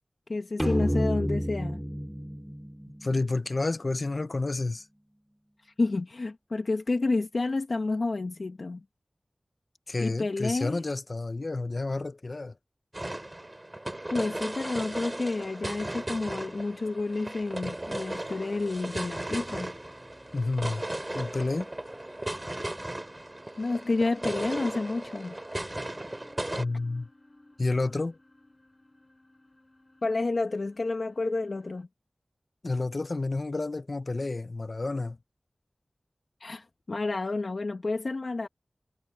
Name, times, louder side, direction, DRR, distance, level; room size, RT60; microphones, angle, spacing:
voice 1, 0.3-1.8 5.6-8.8 10.0-10.8 14.1-19.7 23.6-25.3 30.0-31.9 36.4-38.5, left 3 dB, 75° left, 1.4 m, -30 dB
sound 1, 0.6-4.1, equal, 5° right, 2.1 m, -31 dB
voice 2, 3.0-4.9 9.9-12.5 20.3-20.8 21.1-21.7 26.6-27.1 27.6-28.2 32.6-35.2, left 3 dB, 55° left, 0.5 m, -30 dB
sound 2, 12.9-26.6, right 1 dB, 25° right, 3.4 m, -36 dB
sound 3, 13.8-31.8, left 1 dB, 30° left, 5.3 m, -59 dB
wide cardioid pair, 70°, 0 cm